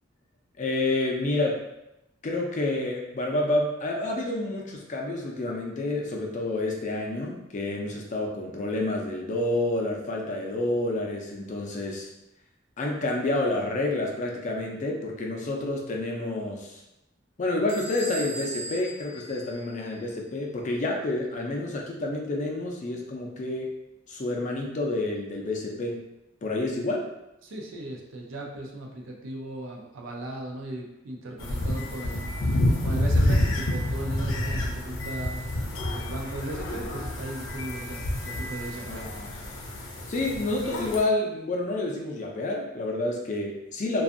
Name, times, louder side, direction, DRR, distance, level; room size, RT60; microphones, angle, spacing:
voice 1, 0.6-1.6 2.2-12.1 12.8-16.8 17.4-23.7 24.1-26.0 26.4-27.1 38.9-39.3 40.1-44.0, left 2 dB, 40° left, 0 dB, 0.4 m, -29 dB
Bell / Squeak, 17.7-20.2, right 2 dB, 25° right, 0.5 m, -39 dB
voice 2, 27.4-32.3 32.8-35.6 35.8-39.1, right 1 dB, 75° right, 0 dB, 0.5 m, -37 dB
sound 1, 31.4-41.0, left 1 dB, 90° left, 0.5 m, -28 dB
2.5 x 2.3 x 2.5 m, 0.90 s
head